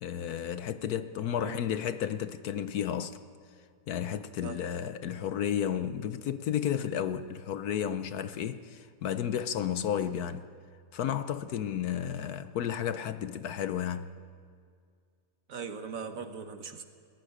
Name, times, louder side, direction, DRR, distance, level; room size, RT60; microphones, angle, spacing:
voice 1, 0.0-3.2 3.9-10.5 10.9-14.2, left 9 dB, 70° left, 1.1 m, -32 dB
voice 2, 1.3-1.8 4.4-4.7 15.5-16.8, right 5 dB, 55° right, 1.4 m, -40 dB
20.5 x 13.5 x 9.9 m
omnidirectional pair, 1.9 m